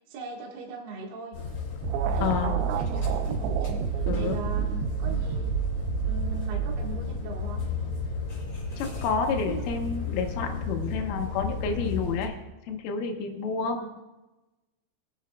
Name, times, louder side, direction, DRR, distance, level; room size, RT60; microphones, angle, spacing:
voice 1, 0.1-1.4 2.1-3.6 3.9-4.7 5.0-5.5 6.0-7.7 9.4-10.0 13.7-14.0, right 5 dB, 60° right, -1 dB, 3.2 m, -40 dB
sound 1, 1.3-12.2, left 4 dB, 35° left, 3.6 m, -33 dB
sound 2, 1.8-7.3, right 9 dB, 80° right, 2.5 m, -29 dB
voice 2, 2.2-2.6 4.1-4.4 8.8-12.3 12.7-13.8, left 5 dB, 85° left, 3 dB, 3.8 m, -29 dB
22.5 x 10.0 x 2.3 m, 1.0 s
omnidirectional pair, 5.7 m